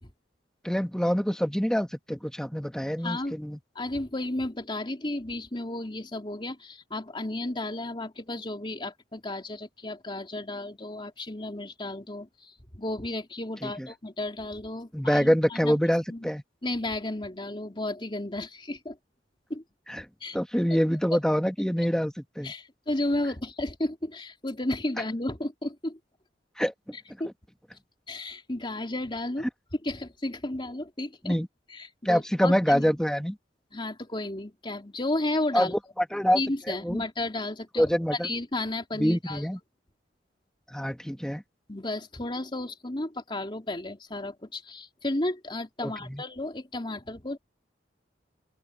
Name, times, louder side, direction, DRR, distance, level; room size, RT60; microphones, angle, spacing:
voice 1, 0.6-3.6 13.6-13.9 14.9-16.4 19.9-20.0 20.3-22.5 26.6-26.7 31.2-31.5 32.0-33.4 35.5-36.4 36.7-37.0 37.8-38.3 38.9-39.6 40.7-41.4 45.8-46.2, equal, 5° left, 1.5 m, -26 dB
voice 2, 3.0-3.4 3.7-15.7 16.1-16.3 16.6-19.0 19.5-19.6 20.2-20.4 22.4-26.0 27.2-27.3 28.1-29.5 29.8-31.4 31.7-32.9 33.7-35.7 36.3-37.9 38.2-39.4 41.7-47.4, left 1 dB, 30° left, 3.1 m, -33 dB
open air
head